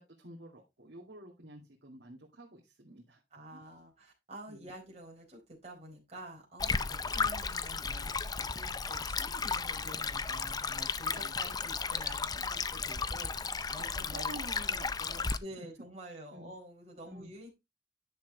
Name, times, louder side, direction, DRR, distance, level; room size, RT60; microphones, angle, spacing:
voice 1, 0.0-3.2 3.5-3.7 4.5-4.7 7.1-7.3 11.1-11.3 13.8-15.7 16.3-16.5 17.0-17.3, right 1 dB, 80° right, -2 dB, 2.2 m, -50 dB
voice 2, 3.3-14.4 15.4-17.6, right 1 dB, 40° right, -1 dB, 4.6 m, -49 dB
Stream, 6.6-15.4, left 5 dB, 20° left, 0.5 m, -34 dB
10.5 x 7.2 x 3.3 m, 0.22 s
head